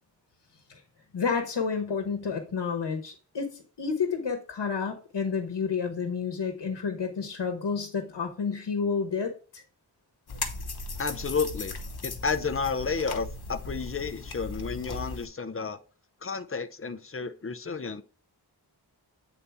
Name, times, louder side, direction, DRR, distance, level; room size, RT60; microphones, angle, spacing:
voice 1, 1.1-9.6, left 5 dB, 85° left, 1.1 m, -30 dB
sound 1, 10.3-15.3, left 3 dB, 65° left, 1.1 m, -37 dB
voice 2, 11.0-11.8 12.0-15.8 16.2-18.0, left 5 dB, 35° left, 0.6 m, -31 dB
8.4 x 4.1 x 3.4 m
wide cardioid pair, 80°, 40 cm